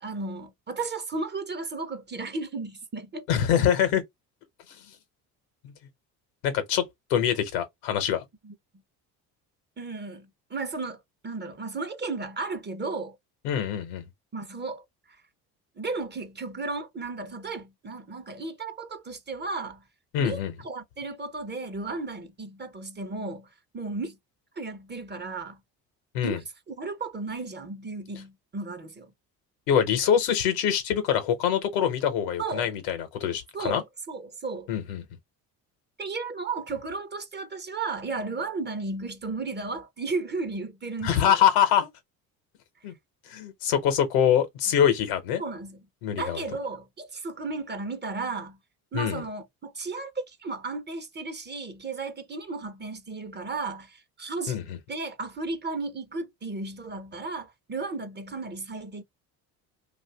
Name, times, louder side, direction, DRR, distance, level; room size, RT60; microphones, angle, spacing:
voice 1, 0.0-3.3 8.4-8.5 9.8-13.2 14.3-14.8 15.8-19.8 20.2-23.5 23.7-24.2 24.6-25.6 26.2-29.1 32.4-32.7 33.5-34.7 36.0-41.4 45.4-45.8 46.1-48.6 48.9-54.6 54.9-59.0, right 3 dB, 25° right, 0.7 m, -34 dB
voice 2, 3.3-4.0 5.6-5.7 6.4-6.8 7.1-8.2 13.4-14.0 20.1-20.5 26.1-26.4 29.7-33.8 34.7-35.0 41.0-41.9 42.8-42.9 43.3-45.4 46.0-46.4 48.9-49.2 54.5-54.8, left 9 dB, 80° left, 0.9 m, -24 dB
2.6 x 2.4 x 3.3 m
hypercardioid pair, 65°, 45 cm